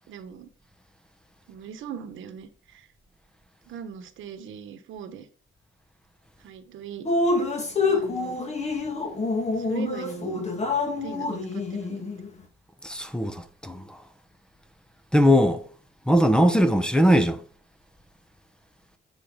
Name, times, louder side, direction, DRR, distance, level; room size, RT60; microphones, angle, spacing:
voice 1, 0.1-0.5 1.5-2.9 3.6-5.3 6.4-7.1 7.9-8.4 9.6-10.5 10.9-12.1, right 8 dB, 80° right, 1.2 m, -40 dB
Drip, 7.1-12.3, left 3 dB, 35° left, 2.2 m, -27 dB
voice 2, 12.8-14.0 15.1-15.6 16.1-17.4, equal, 5° left, 1.0 m, -20 dB
9.1 x 4.5 x 4.9 m
cardioid pair, 90°, 20 cm